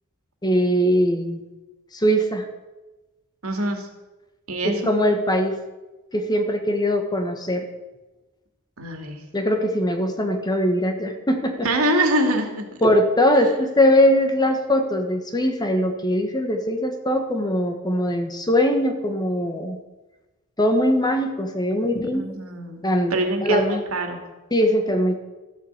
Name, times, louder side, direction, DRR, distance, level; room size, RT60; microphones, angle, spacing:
voice 1, 0.4-1.4 1.9-2.5 4.6-5.6 6.1-7.7 9.3-11.6 12.8-19.8 20.6-22.2 22.8-23.1 23.4-23.7 24.5-25.2, equal, 20° left, 5 dB, 1.4 m, -21 dB
voice 2, 3.4-3.9 4.5-4.8 8.8-9.2 11.6-12.6 22.1-22.8 23.1-24.2, right 1 dB, 80° right, 4 dB, 2.3 m, -24 dB
13.5 x 7.6 x 8.1 m, 1.1 s
head